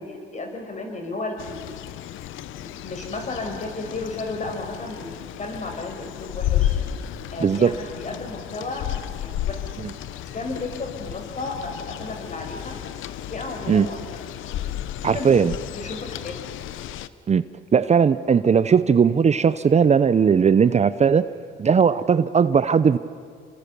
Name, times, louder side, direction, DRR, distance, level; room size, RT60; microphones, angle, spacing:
voice 1, 0.0-1.7 2.5-6.8 7.3-8.9 9.2-9.6 10.3-12.8 13.3-14.2 15.0-15.3 15.7-16.4, left 2 dB, 35° left, 5.7 m, -33 dB
sound 1, 1.4-17.1, left 12 dB, 85° left, 0.8 m, -32 dB
voice 2, 7.4-7.8 13.7-13.9 15.0-15.5 17.3-17.4 17.7-21.2 21.6-23.0, right 6 dB, 35° right, 0.7 m, -18 dB
28.0 x 23.5 x 6.9 m
cardioid pair, 90°, 20 cm